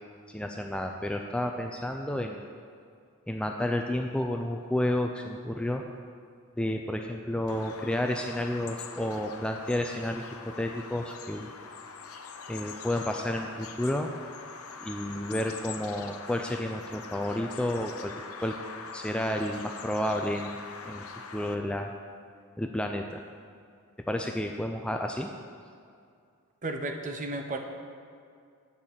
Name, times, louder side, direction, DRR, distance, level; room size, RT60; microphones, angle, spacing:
voice 1, 0.3-2.5 3.3-5.8 6.6-11.5 12.5-14.1 14.8-18.1 18.4-18.6 18.9-20.6 20.8-21.0 21.3-21.9 22.6-23.2 24.1-25.3, left 1 dB, 5° left, 3 dB, 0.4 m, -31 dB
Bird vocalization bird call bird song, 7.5-21.5, left 5 dB, 80° left, 0.7 m, -43 dB
voice 2, 26.6-27.6, right 2 dB, 35° right, 5 dB, 0.9 m, -33 dB
8.4 x 6.5 x 7.3 m, 2.3 s
head